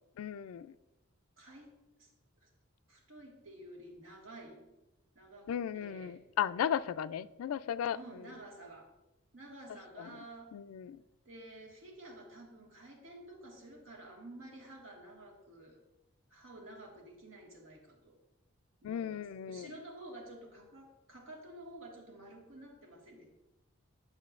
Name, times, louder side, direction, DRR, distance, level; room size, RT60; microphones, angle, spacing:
voice 1, 0.2-0.7 5.5-8.0 10.0-10.1 10.5-11.0 18.8-19.7, left 9 dB, 90° left, 16 dB, 0.3 m, -35 dB
voice 2, 1.4-2.1 2.4-2.5 2.9-4.7 5.1-6.2 7.9-8.9 9.3-10.5 11.2-15.8 16.3-18.2 18.8-23.3, right 1 dB, 70° right, 0 dB, 1.6 m, -51 dB
10.5 x 6.5 x 2.5 m, 1.0 s
head